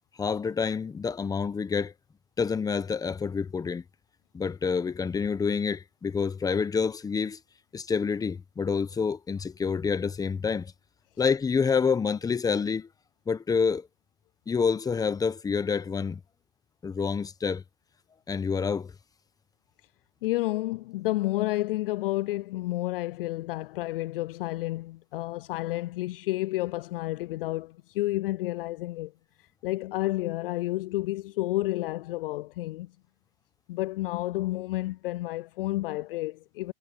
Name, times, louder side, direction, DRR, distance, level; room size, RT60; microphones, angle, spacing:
voice 1, 0.2-1.9 2.4-3.8 4.3-7.4 7.7-10.7 11.2-12.9 13.3-13.9 14.5-16.2 16.8-17.6 18.3-18.9, left 5 dB, 10° left, 1.2 m, -27 dB
voice 2, 20.2-29.1 29.6-32.9 33.7-36.7, left 18 dB, 55° left, 0.4 m, -30 dB
hypercardioid pair, 125°, 33 cm